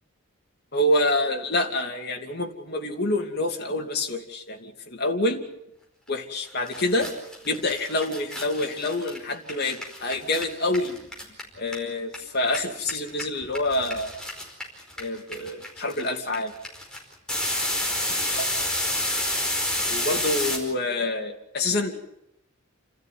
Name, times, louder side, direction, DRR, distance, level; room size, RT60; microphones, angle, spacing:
voice 1, 0.7-5.4 6.1-7.1 7.4-11.0 11.6-14.1 15.0-16.5 18.4-18.5 19.9-22.0, left 2 dB, 50° left, 2 dB, 2.9 m, -27 dB
sound 1, 6.4-6.5 6.7-12.2 12.4-20.6, left 1 dB, 5° left, 4.9 m, -29 dB
30.0 x 13.5 x 9.6 m, 0.83 s
head